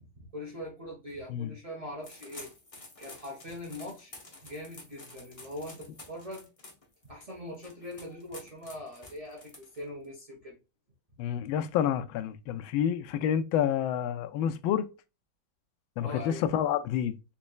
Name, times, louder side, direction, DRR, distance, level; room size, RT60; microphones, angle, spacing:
voice 1, 0.0-2.5 3.0-4.1 4.4-6.5 7.0-10.6 16.0-16.4, left 1 dB, 25° right, 0.8 m, -42 dB
sound 1, 2.0-10.1, left 2 dB, 65° left, 0.3 m, -50 dB
voice 2, 11.2-14.9 16.0-17.2, left 9 dB, 80° left, 1.3 m, -29 dB
4.2 x 3.1 x 2.3 m
omnidirectional pair, 2.2 m